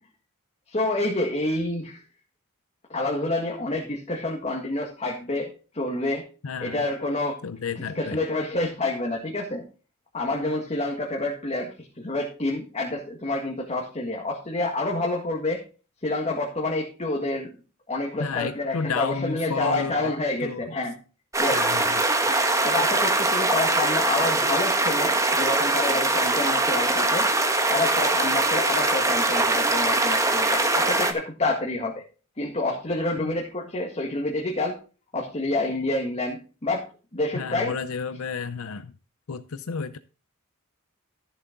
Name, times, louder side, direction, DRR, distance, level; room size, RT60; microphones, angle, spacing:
voice 1, 0.7-2.0 2.9-6.2 6.6-7.4 8.0-9.6 10.1-11.7 12.0-15.6 16.0-17.5 17.9-20.9 21.4-21.6 22.3-27.3 27.7-31.9 32.4-34.8 35.1-36.8 37.1-37.7, left 2 dB, 30° left, -1 dB, 1.8 m, -28 dB
voice 2, 6.4-6.8 7.4-8.2 18.2-20.1 20.4-20.7 21.5-22.1 33.2-33.3 37.3-38.9 39.3-40.0, left 5 dB, 75° left, 11 dB, 0.6 m, -31 dB
sound 1, 21.3-31.1, right 2 dB, 15° right, 1.2 m, -22 dB
13.0 x 7.4 x 3.9 m, 0.35 s
head